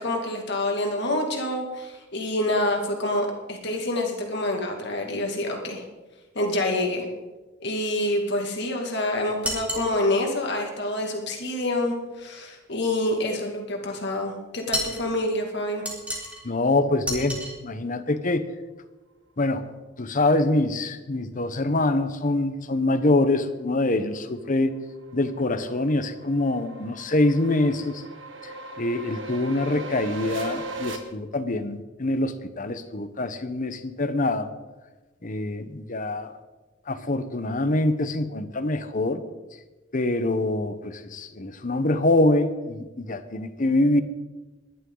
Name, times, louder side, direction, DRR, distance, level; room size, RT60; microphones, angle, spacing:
voice 1, 0.0-5.8 6.3-7.1 7.6-15.8, left 1 dB, 60° left, 1 dB, 2.4 m, -27 dB
sound 1, 9.4-9.9 14.7-15.1 15.9-16.4 17.0-17.5, equal, 5° right, 3.6 m, -30 dB
voice 2, 16.4-18.5 19.4-19.7 20.0-24.7 25.1-28.0 28.4-34.5 35.2-36.4 36.9-39.2 39.9-44.0, left 2 dB, 45° left, 10 dB, 1.0 m, -25 dB
sound 2, 24.4-31.0, right 2 dB, 75° right, 1.7 m, -38 dB
21.0 x 11.5 x 4.0 m, 1.2 s
head